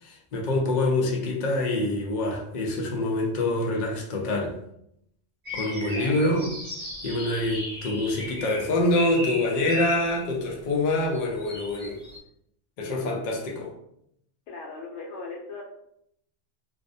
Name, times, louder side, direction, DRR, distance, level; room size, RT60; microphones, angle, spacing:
voice 1, 0.0-4.5 5.5-6.5 7.0-12.0 12.8-13.7, left 2 dB, 55° left, 0 dB, 0.5 m, -26 dB
sound 1, 5.4-10.3 11.1-12.2, equal, 40° right, 0.8 m, -36 dB
voice 2, 5.9-6.3 14.5-15.6, left 3 dB, 80° left, -1 dB, 0.9 m, -38 dB
2.4 x 2.0 x 2.5 m, 0.74 s
omnidirectional pair, 1.2 m